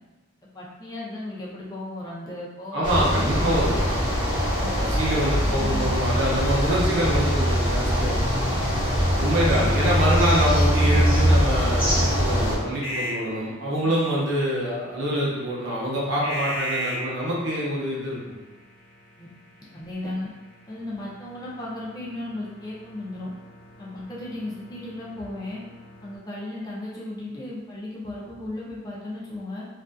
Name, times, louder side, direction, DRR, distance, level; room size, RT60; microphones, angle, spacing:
voice 1, 0.5-3.6 4.5-4.7 5.4-5.9 9.4-9.8 13.8-13.9 19.2-19.3 19.7-20.3 20.7-23.3 23.8-25.6 26.0-29.6, left 1 dB, 20° left, -6 dB, 0.4 m, -35 dB
voice 2, 2.7-3.9 4.3-8.2 9.2-18.2, equal, 60° right, -5 dB, 0.7 m, -25 dB
sound 1, 2.8-12.6, equal, 20° right, 0.8 m, -22 dB
sound 2, 12.6-26.2, equal, 60° left, 0.7 m, -39 dB
2.5 x 2.3 x 2.2 m, 1.3 s
head